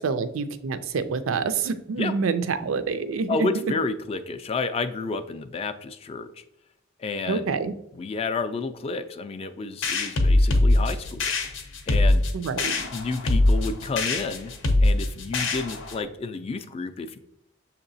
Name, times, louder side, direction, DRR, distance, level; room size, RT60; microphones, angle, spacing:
voice 1, 0.0-3.6 7.3-7.7 12.3-12.7, right 5 dB, 90° right, 11 dB, 0.4 m, -27 dB
voice 2, 3.3-6.4 7.0-7.6 7.9-11.2 11.9-12.2 12.9-14.5 14.8-17.2, left 4 dB, 30° left, 9 dB, 0.3 m, -30 dB
sound 1, 9.8-16.0, left 2 dB, 75° left, 0.6 m, -22 dB
6.7 x 2.8 x 2.7 m, 0.79 s
head